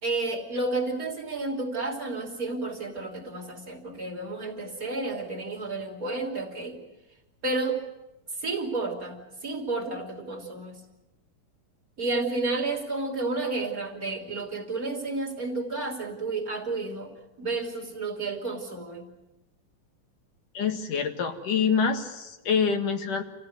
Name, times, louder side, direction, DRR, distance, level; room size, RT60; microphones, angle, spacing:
voice 1, 0.0-6.8 7.4-7.8 8.4-10.8 12.0-17.1 17.4-19.1, right 3 dB, 25° right, 0 dB, 3.0 m, -31 dB
voice 2, 20.5-23.2, left 6 dB, 65° left, 5 dB, 3.1 m, -26 dB
28.5 x 16.5 x 9.4 m, 1.0 s
omnidirectional pair, 4.1 m